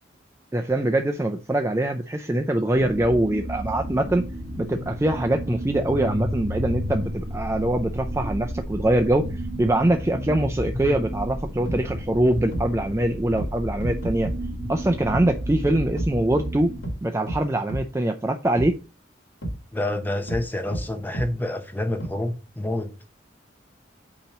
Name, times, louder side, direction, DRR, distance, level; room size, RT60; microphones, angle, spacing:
voice 1, 0.5-4.3 4.6-14.3 14.7-16.7 17.0-18.7, right 1 dB, 15° right, 0.4 m, -23 dB
sound 1, 2.7-16.8, equal, 40° right, 1.1 m, -32 dB
sound 2, 11.7-11.8 12.5-12.7 13.4-13.5 13.8-14.4 15.1-15.2 16.0-16.1 16.8-17.0 17.3-17.4 17.7-17.8 18.6-18.7 19.4-19.6 20.3-20.4 20.7-20.8 21.1-21.3 22.0-22.1, right 1 dB, 75° left, 1.9 m, -29 dB
voice 2, 19.7-22.9, left 1 dB, 10° left, 0.8 m, -28 dB
8.5 x 2.9 x 5.8 m
head